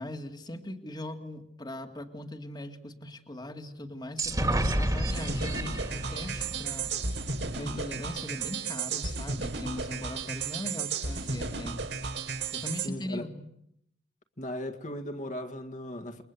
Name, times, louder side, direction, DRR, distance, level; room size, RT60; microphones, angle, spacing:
voice 1, 0.0-6.9 7.6-11.9 12.5-13.5, left 1 dB, 25° left, 2.0 m, -40 dB
sound 1, 4.2-7.9, right 1 dB, 20° right, 2.3 m, -31 dB
sound 2, 5.0-12.9, right 4 dB, 90° right, 4.6 m, -34 dB
voice 2, 12.8-13.3 14.4-16.2, left 1 dB, 45° left, 2.0 m, -37 dB
29.0 x 22.5 x 8.3 m
head